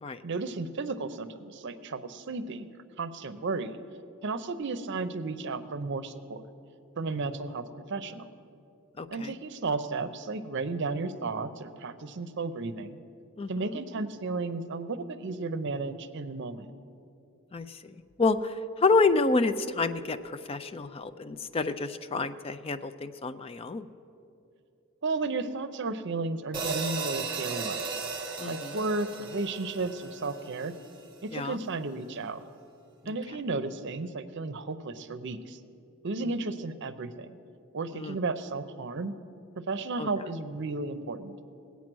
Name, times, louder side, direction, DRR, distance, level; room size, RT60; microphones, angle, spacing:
voice 1, 0.2-3.8 4.2-6.4 7.0-7.6 7.9-8.3 9.1-13.0 13.5-16.7 25.0-27.8 28.4-30.7 31.2-32.4 33.1-35.6 36.0-37.4 37.7-39.1 39.6-41.3, right 3 dB, 60° right, 11 dB, 0.6 m, -33 dB
voice 2, 9.0-9.3 13.4-13.5 17.5-17.7 18.2-20.2 20.5-23.9 28.4-28.8 31.3-31.6 33.0-33.2 37.9-38.2 40.0-40.1, left 3 dB, 25° left, 11 dB, 0.4 m, -28 dB
sound 1, 26.5-30.9, right 4 dB, 25° right, 1.4 m, -36 dB
19.0 x 8.3 x 6.1 m, 2.7 s
head